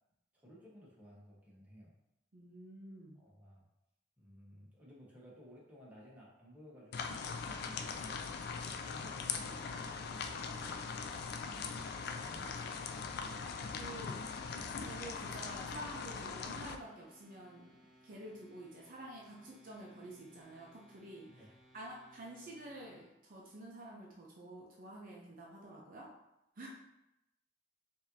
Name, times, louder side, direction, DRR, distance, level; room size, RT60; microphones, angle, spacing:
voice 1, 0.3-1.9 3.1-3.7 4.2-8.2 8.8-10.7 11.6-12.9 21.3-21.5, equal, 10° right, -6 dB, 1.1 m, -57 dB
voice 2, 2.3-3.2 11.4-11.6 13.7-14.4 14.8-17.7 18.0-21.4 21.7-26.1 26.6-26.7, right 1 dB, 50° right, -3 dB, 0.6 m, -49 dB
sound 1, 6.9-16.8, left 5 dB, 60° left, 0.3 m, -41 dB
sound 2, 7.1-23.1, equal, 15° left, 1.2 m, -64 dB
5.0 x 2.7 x 2.7 m, 0.87 s
head